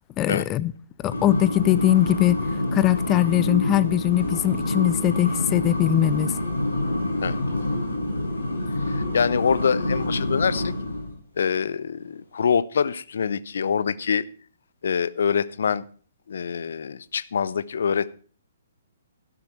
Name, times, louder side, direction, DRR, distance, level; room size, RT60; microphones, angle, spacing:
voice 1, 0.2-0.7 1.0-2.4 2.7-6.3, left 14 dB, 20° left, 0.6 m, -21 dB
sound 1, 1.1-11.1, left 1 dB, 75° left, 5.5 m, -27 dB
voice 2, 8.9-10.7 11.4-14.2 14.8-15.8 16.3-18.1, left 6 dB, 60° left, 0.7 m, -25 dB
12.5 x 12.0 x 4.5 m
figure-of-eight pair, 125°, 0 cm